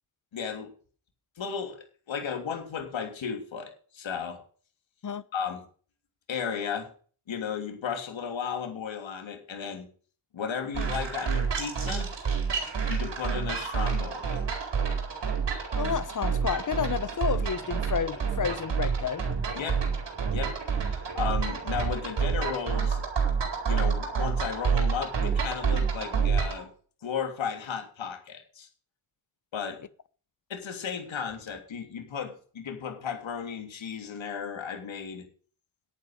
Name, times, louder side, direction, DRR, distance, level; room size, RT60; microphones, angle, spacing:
voice 1, 0.3-0.7 1.4-4.4 5.3-5.6 6.3-6.9 7.3-9.9 10.3-12.1 12.9-14.4 19.5-19.8 20.3-23.1 23.7-26.7 27.0-28.7 29.5-29.8 30.5-35.3, left 7 dB, 65° left, 3.1 m, -34 dB
sound 1, 10.7-26.6, right 6 dB, 55° right, 4.4 m, -28 dB
voice 2, 15.8-19.2, left 7 dB, 40° left, 1.0 m, -30 dB
10.5 x 8.9 x 6.5 m
cardioid pair, 80°, 49 cm